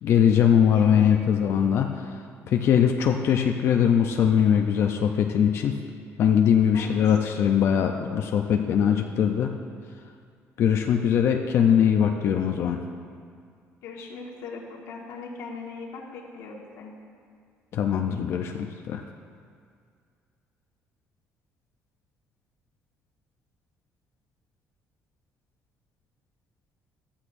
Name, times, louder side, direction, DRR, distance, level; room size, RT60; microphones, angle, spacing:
voice 1, 0.0-2.1 2.5-5.7 6.2-9.5 10.6-12.8 17.7-18.5 18.9-19.0, left 8 dB, 55° left, 3 dB, 0.6 m, -21 dB
voice 2, 0.7-1.2 6.7-7.2 13.8-16.9, left 4 dB, 85° left, -2 dB, 1.8 m, -40 dB
14.5 x 13.0 x 2.7 m, 2.2 s
cardioid pair, 150°, 5 cm